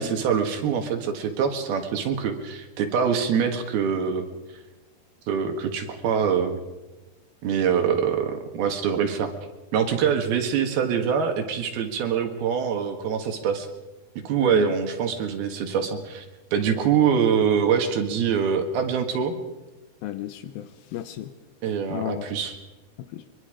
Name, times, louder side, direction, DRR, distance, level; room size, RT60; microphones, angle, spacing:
voice 1, 0.0-4.3 5.3-6.6 7.4-9.3 9.7-13.7 14.3-16.3 16.5-19.4 21.6-22.6, right 7 dB, 70° right, 5 dB, 3.4 m, -24 dB
voice 2, 20.0-21.3 21.9-22.3 23.1-23.2, left 13 dB, 75° left, 11 dB, 2.3 m, -33 dB
23.0 x 23.0 x 5.0 m, 1.1 s
omnidirectional pair, 4.8 m